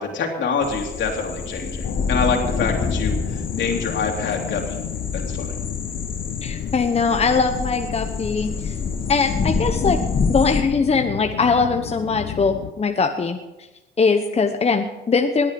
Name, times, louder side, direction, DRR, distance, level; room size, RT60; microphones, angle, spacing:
voice 1, 0.0-4.8 5.1-5.5, left 5 dB, 65° left, 1 dB, 3.3 m, -26 dB
sound 1, 0.6-10.6, left 4 dB, 45° left, 2.2 m, -27 dB
sound 2, 1.8-12.7, left 12 dB, 85° left, 0.8 m, -32 dB
sound 3, 2.3-10.0, left 3 dB, 30° right, 5.5 m, -46 dB
voice 2, 6.4-8.8 9.1-10.0 10.3-13.4 14.0-15.5, left 4 dB, 30° left, 5 dB, 1.0 m, -21 dB
20.0 x 9.0 x 5.3 m, 1.1 s
cardioid pair, 90°, 20 cm